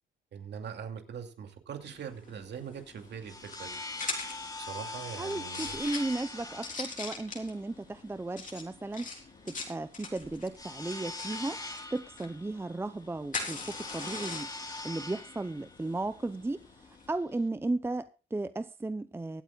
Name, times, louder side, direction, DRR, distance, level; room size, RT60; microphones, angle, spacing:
voice 1, 0.3-3.8 4.6-5.8, right 7 dB, 60° right, 2.5 m, -42 dB
sound 1, 1.8-17.1, left 4 dB, 40° left, 3.6 m, -43 dB
sound 2, 2.9-17.5, left 2 dB, 20° left, 2.6 m, -43 dB
voice 2, 5.2-9.1 9.5-11.6 11.9-16.6 17.1-19.4, right 2 dB, 10° right, 0.6 m, -35 dB
24.5 x 8.8 x 2.4 m
cardioid pair, 90°, 20 cm